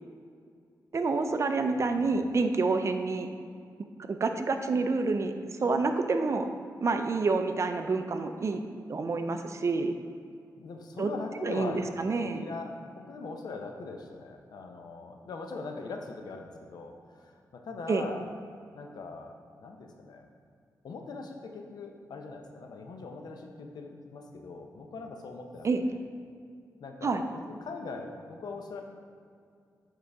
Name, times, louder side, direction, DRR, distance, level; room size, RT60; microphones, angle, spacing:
voice 1, 0.9-3.3 4.1-5.3 5.6-6.5 6.8-8.6 8.9-9.9 11.0-11.1 11.4-12.4 17.9-18.0 25.6-25.8 27.0-27.2, right 3 dB, 45° right, 7 dB, 0.4 m, -28 dB
voice 2, 1.8-2.4 10.6-18.2 18.8-20.3 20.8-26.0 26.8-27.2 27.5-28.8, left 3 dB, 75° left, 3 dB, 0.7 m, -41 dB
8.0 x 3.8 x 3.5 m, 2.3 s
wide cardioid pair, 95°, 7 cm